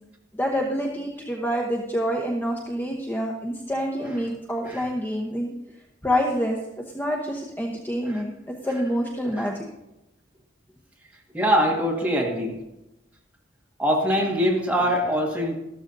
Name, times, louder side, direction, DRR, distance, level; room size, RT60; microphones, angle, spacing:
voice 1, 0.3-5.5 6.0-6.6 6.9-9.6, equal, 10° left, -1 dB, 0.9 m, -27 dB
voice 2, 11.3-12.6 13.8-15.6, equal, 10° right, -2 dB, 1.8 m, -23 dB
13.5 x 13.0 x 2.7 m, 0.91 s
head